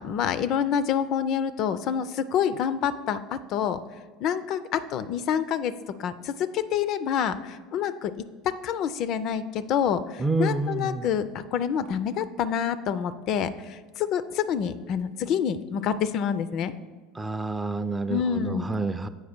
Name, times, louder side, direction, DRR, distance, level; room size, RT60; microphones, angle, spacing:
voice 1, 0.0-3.8 4.2-5.7 6.0-8.1 8.4-16.7 18.1-18.7, left 8 dB, 55° left, 13 dB, 0.3 m, -27 dB
voice 2, 10.2-11.1 17.2-19.1, right 2 dB, 15° right, 11 dB, 0.4 m, -28 dB
8.0 x 4.6 x 4.4 m, 1.5 s
hypercardioid pair, 80°, 0 cm